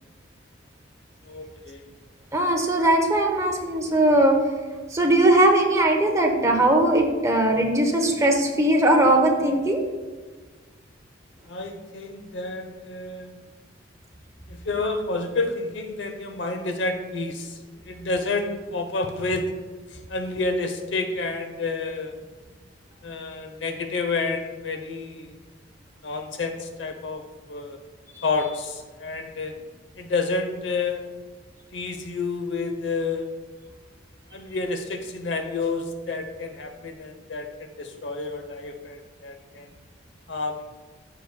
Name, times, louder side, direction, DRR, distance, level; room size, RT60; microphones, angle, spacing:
voice 1, 1.2-1.9 11.4-13.3 14.5-19.5 19.9-22.2 23.0-25.4 26.0-27.8 28.2-29.5 30.0-31.0 31.7-33.3 34.3-39.7 40.3-40.6, left 3 dB, 70° left, 6 dB, 0.8 m, -29 dB
voice 2, 2.3-4.4 4.9-9.8, right 1 dB, 15° right, 1 dB, 1.0 m, -19 dB
13.0 x 5.0 x 2.3 m, 1.4 s
head